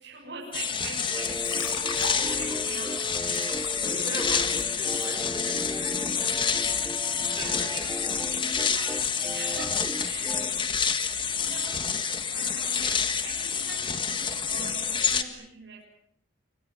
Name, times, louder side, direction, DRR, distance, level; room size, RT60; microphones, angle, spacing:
voice 1, 0.0-4.5 6.8-7.0 7.3-10.5 11.4-11.9 12.2-15.8, right 4 dB, 60° right, 7.7 m, -42 dB
sound 1, 0.5-15.2, left 6 dB, 25° left, 1.8 m, -28 dB
sound 2, 1.1-10.5, equal, 5° left, 1.2 m, -38 dB
sound 3, 1.2-5.1, left 4 dB, 90° left, 4.6 m, -40 dB
voice 2, 2.1-2.6 3.8-8.2 10.2-10.7, right 1 dB, 20° right, 5.2 m, -42 dB
28.5 x 25.5 x 7.3 m
head